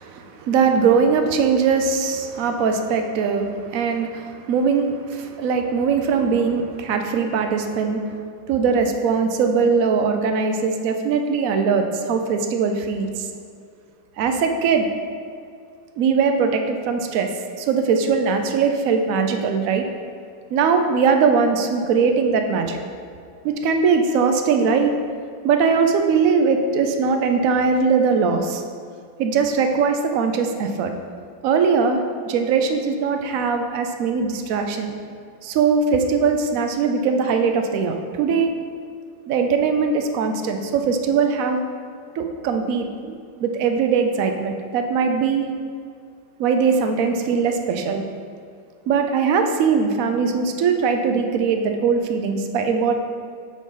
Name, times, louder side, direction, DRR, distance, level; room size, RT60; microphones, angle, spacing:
voice 1, 0.0-8.2 8.5-13.3 14.2-14.9 16.0-17.3 17.6-19.8 20.5-22.8 23.4-24.9 25.4-28.6 29.2-30.9 31.4-35.0 35.4-38.5 39.3-41.6 42.1-43.2 43.4-45.5 46.4-48.0 48.9-52.9, right 5 dB, 70° right, 5 dB, 0.8 m, -20 dB
8.4 x 3.9 x 5.5 m, 2.3 s
omnidirectional pair, 2.1 m